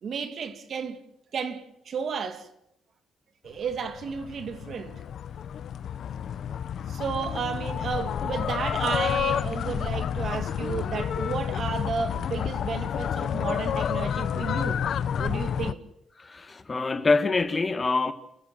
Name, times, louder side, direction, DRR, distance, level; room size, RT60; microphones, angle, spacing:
voice 1, 0.0-1.0 1.3-2.5 3.4-5.0 6.9-14.8 15.2-15.8, right 6 dB, 55° right, 2.3 m, -32 dB
sound 1, 3.7-15.7, left 8 dB, 65° left, 0.9 m, -30 dB
voice 2, 16.2-18.1, left 3 dB, 30° left, 1.6 m, -25 dB
29.0 x 14.5 x 7.7 m
cardioid pair, 90°, 0 cm